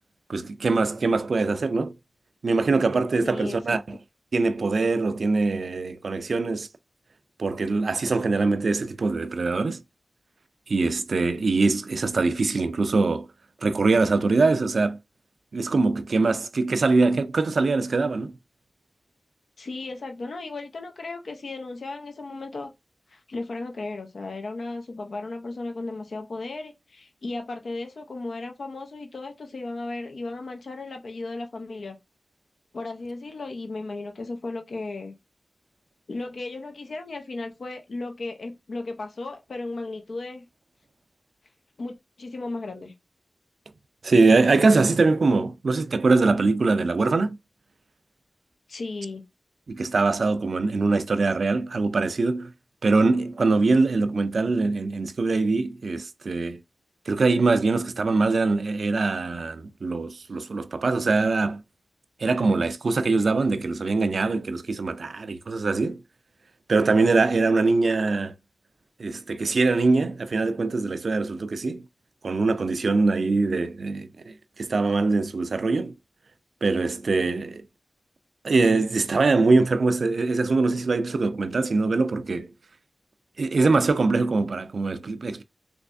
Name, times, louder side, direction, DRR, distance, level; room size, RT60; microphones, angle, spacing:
voice 1, 0.3-1.9 2.4-4.0 4.3-6.7 7.4-9.8 10.7-13.3 13.6-15.0 15.5-18.3 44.0-47.4 49.7-52.5 52.8-56.6 57.1-61.6 62.2-66.0 66.7-68.3 69.0-71.8 72.2-75.9 76.6-77.6 78.4-82.5 83.4-85.4, right 3 dB, 75° right, 0.4 m, -23 dB
voice 2, 3.2-3.8 19.6-22.7 23.1-32.0 32.7-35.1 36.1-40.4 41.8-42.9 48.7-49.2, left 3 dB, 80° left, 0.7 m, -35 dB
3.3 x 3.2 x 2.6 m
cardioid pair, 45°, 0 cm